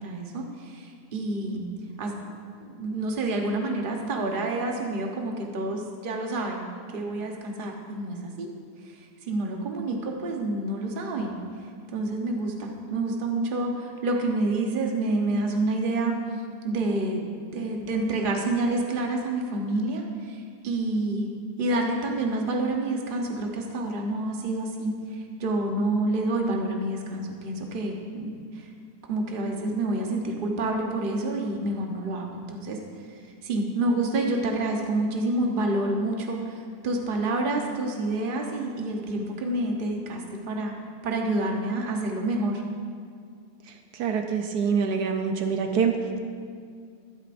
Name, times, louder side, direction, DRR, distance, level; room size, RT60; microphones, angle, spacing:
voice 1, 0.0-1.7 2.0-2.3 2.6-6.7 6.9-8.5 9.2-11.4 11.9-16.1 16.6-21.3 21.6-28.7 29.0-32.8 33.1-33.2 33.4-40.7 41.0-42.6, right 2 dB, 35° right, 1 dB, 1.1 m, -28 dB
voice 2, 44.0-46.0, right 6 dB, 85° right, 4 dB, 1.3 m, -25 dB
14.0 x 12.0 x 2.6 m, 2.2 s
omnidirectional pair, 1.7 m